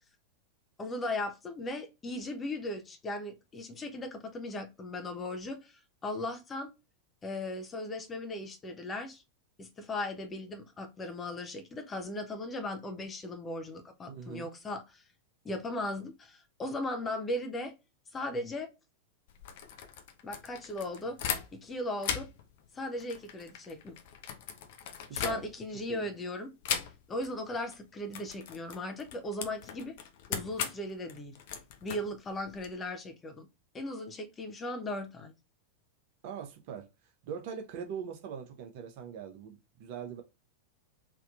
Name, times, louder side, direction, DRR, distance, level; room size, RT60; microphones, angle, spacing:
voice 1, 0.8-6.7 7.2-9.2 9.6-15.0 15.4-17.7 18.1-18.7 20.2-21.2 21.5-22.3 22.7-24.0 25.1-26.5 27.1-30.0 30.3-31.3 31.8-33.5 33.7-35.3, left 1 dB, 20° left, 0.7 m, -37 dB
voice 2, 14.1-14.5 25.1-25.4 25.9-26.1 36.2-36.9 37.2-40.2, right 7 dB, 50° right, 0.7 m, -41 dB
sound 1, 19.3-21.7 22.0-25.8 26.6-27.3 27.6-27.8 28.1-32.7, left 8 dB, 50° left, 0.6 m, -39 dB
3.6 x 2.7 x 2.4 m
figure-of-eight pair, 90°, 0 cm